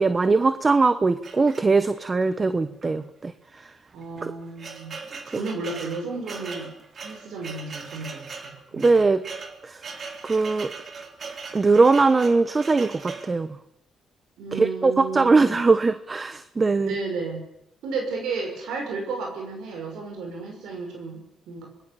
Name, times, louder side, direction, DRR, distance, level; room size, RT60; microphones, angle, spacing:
voice 1, 0.0-3.3 3.6-3.7 4.2-4.3 8.7-9.2 9.6-9.8 10.2-10.7 11.5-13.6 14.5-16.9, right 3 dB, 30° right, 13 dB, 1.1 m, -21 dB
sound 1, 1.2-2.1 2.8-2.9 3.2-3.3 4.0-13.4, right 4 dB, 45° right, 3.1 m, -40 dB
voice 2, 2.5-3.0 3.9-6.7 7.0-9.0 14.4-15.6 16.8-17.5 17.8-21.7, right 4 dB, 80° right, 2 dB, 6.3 m, -33 dB
25.0 x 20.0 x 7.2 m, 0.79 s
cardioid pair, 90°, 0 cm